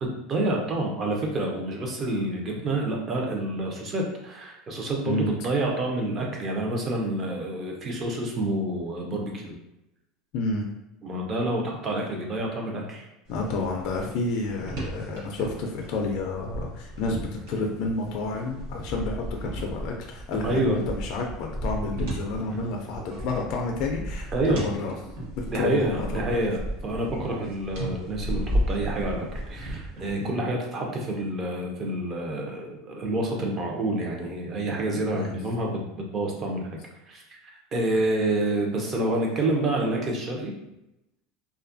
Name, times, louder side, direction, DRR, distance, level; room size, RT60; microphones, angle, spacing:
voice 1, 0.0-9.6 11.0-13.1 20.4-20.8 23.0-23.2 24.3-24.7 25.5-36.8 37.1-40.5, right 1 dB, 25° right, 0 dB, 0.5 m, -28 dB
voice 2, 10.3-10.7 13.3-24.9 25.4-26.4 30.2-30.4 35.1-35.3 37.9-38.4 39.3-39.8, left 3 dB, 50° left, 1 dB, 0.3 m, -30 dB
sound 1, 13.3-30.3, right 1 dB, 80° right, 1.0 m, -34 dB
2.6 x 2.3 x 2.5 m, 0.88 s
supercardioid pair, 155°, 0 cm